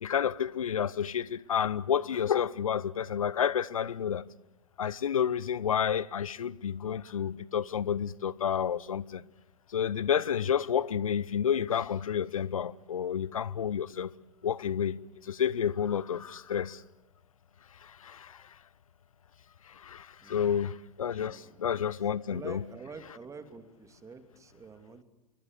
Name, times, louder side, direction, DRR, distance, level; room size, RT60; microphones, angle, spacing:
voice 1, 0.0-4.3 4.8-9.2 9.7-14.1 14.4-16.8 17.8-18.4 19.7-22.6, left 8 dB, 75° left, 0.8 m, -30 dB
voice 2, 20.2-20.6 21.1-21.7 22.0-25.0, right 4 dB, 15° right, 2.7 m, -48 dB
27.0 x 23.5 x 8.1 m
figure-of-eight pair, 90°, 18 cm